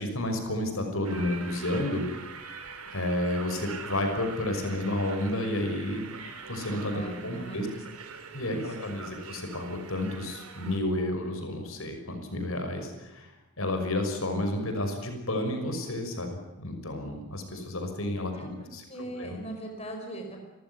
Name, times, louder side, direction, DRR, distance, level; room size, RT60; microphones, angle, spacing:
voice 1, 0.0-2.1 2.9-6.1 6.5-7.7 8.3-19.4, left 1 dB, 65° left, 5 dB, 5.9 m, -31 dB
sound 1, 1.0-10.8, right 5 dB, 85° right, 3.5 m, -43 dB
voice 2, 6.9-7.8 8.4-8.6 18.3-20.5, right 2 dB, 30° left, 2 dB, 4.9 m, -40 dB
28.5 x 15.5 x 9.8 m, 1.0 s
head